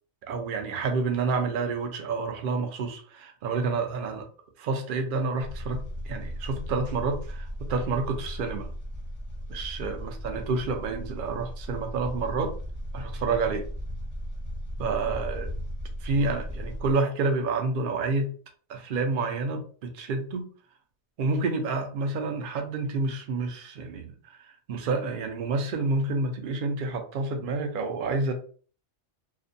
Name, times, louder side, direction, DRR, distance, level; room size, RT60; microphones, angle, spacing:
voice 1, 0.2-4.3 4.6-8.7 9.5-12.5 12.9-13.7 14.8-15.5 16.0-18.3 18.7-20.5 21.2-28.3, right 3 dB, 60° right, 4 dB, 0.6 m, -29 dB
sound 1, 5.4-16.9, equal, 20° left, 0.6 m, -36 dB
2.5 x 2.1 x 2.6 m, 0.42 s
omnidirectional pair, 1.2 m